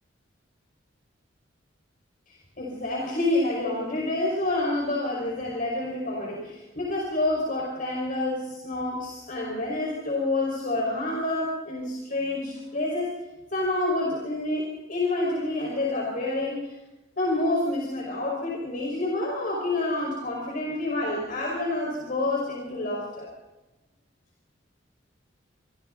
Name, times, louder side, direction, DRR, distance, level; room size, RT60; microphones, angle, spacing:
voice 1, 2.3-13.1 13.5-16.7 17.2-23.3, left 2 dB, 45° left, -2 dB, 5.4 m, -28 dB
26.5 x 26.5 x 4.1 m, 1.0 s
head